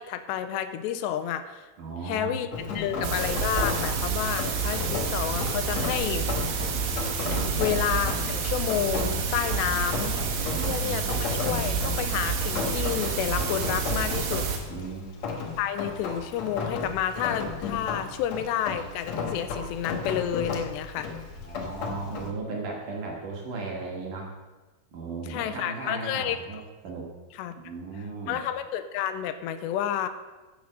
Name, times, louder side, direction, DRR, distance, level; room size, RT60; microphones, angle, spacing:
voice 1, 0.0-1.7 2.0-6.3 7.3-10.2 10.6-14.5 15.6-21.1 25.3-26.4 27.4-27.5 28.3-30.1, left 10 dB, 85° left, 11 dB, 2.8 m, -30 dB
voice 2, 1.8-3.0 7.5-7.8 10.5-11.1 14.7-15.0 21.4-24.3 24.9-27.1 27.6-28.4, right 3 dB, 50° right, -1 dB, 3.3 m, -36 dB
Rain, 2.5-22.3, left 4 dB, 60° left, 1.9 m, -34 dB
sound 1, 3.0-14.6, right 5 dB, 70° right, 3.6 m, -29 dB
14.5 x 7.6 x 6.5 m, 1.2 s
omnidirectional pair, 5.0 m